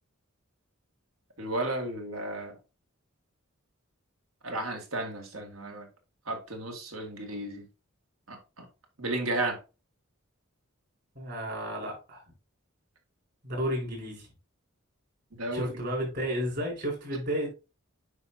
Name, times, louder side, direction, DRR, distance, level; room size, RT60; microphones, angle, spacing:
voice 1, 1.4-2.5 4.4-5.9 6.3-7.6 8.3-8.7 9.0-9.6 15.4-15.7, right 1 dB, 90° right, 2.2 m, -33 dB
voice 2, 11.1-12.2 13.4-14.3 15.5-17.5, equal, 55° right, 4.6 m, -32 dB
9.5 x 5.4 x 2.8 m
head